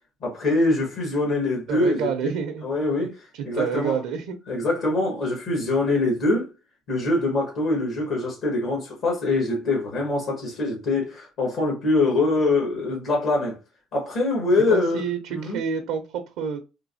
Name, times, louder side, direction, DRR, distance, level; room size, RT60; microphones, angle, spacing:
voice 1, 0.2-2.3 2.6-3.9 4.5-6.5 6.9-13.6 13.9-15.0 15.3-15.6, left 2 dB, 70° left, 1.5 m, -24 dB
voice 2, 1.7-2.6 3.0-3.1 3.3-4.4 14.7-16.7, right 7 dB, 80° right, 0.6 m, -28 dB
3.7 x 2.7 x 2.6 m
supercardioid pair, 80°, 0 cm